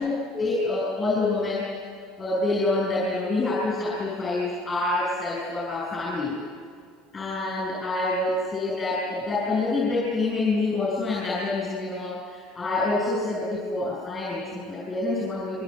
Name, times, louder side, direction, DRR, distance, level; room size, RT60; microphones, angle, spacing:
voice 1, 0.0-1.7 2.2-6.4 7.1-15.6, left 2 dB, 25° left, -5 dB, 8.0 m, -27 dB
26.0 x 23.5 x 8.0 m, 2.2 s
supercardioid pair, 105°, 0 cm